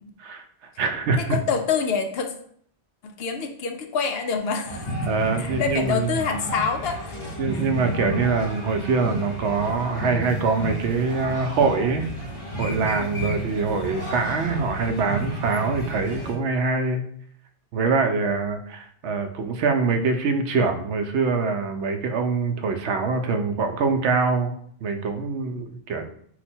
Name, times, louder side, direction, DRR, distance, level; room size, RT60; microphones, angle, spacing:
voice 1, 0.2-1.4 5.1-6.1 7.4-12.1 12.6-17.0 17.7-24.6 24.8-26.1, right 4 dB, 80° right, 6 dB, 0.9 m, -24 dB
voice 2, 1.2-2.3 3.0-4.9 5.3-7.6, left 5 dB, 65° left, 5 dB, 0.7 m, -27 dB
sound 1, 4.7-16.3, right 1 dB, 30° left, 0.9 m, -32 dB
4.6 x 2.2 x 4.3 m, 0.63 s
omnidirectional pair, 1.2 m